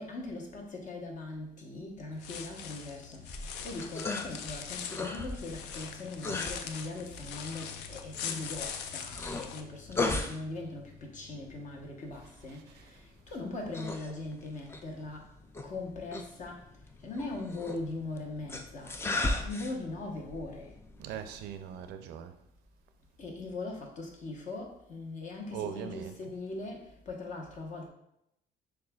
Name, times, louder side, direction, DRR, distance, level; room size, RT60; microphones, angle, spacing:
voice 1, 0.0-15.3 15.6-16.7 17.0-20.8 23.2-27.9, left 2 dB, 45° left, 0 dB, 1.0 m, -40 dB
sound 1, 2.1-9.6, left 7 dB, 85° left, 0.4 m, -42 dB
sound 2, 3.2-21.9, left 2 dB, 15° left, 0.3 m, -39 dB
voice 2, 12.5-12.9 13.3-13.4 21.0-22.3 25.5-26.2, right 9 dB, 80° right, 9 dB, 0.4 m, -41 dB
6.3 x 2.4 x 2.3 m, 0.79 s
cardioid pair, 110°, 17 cm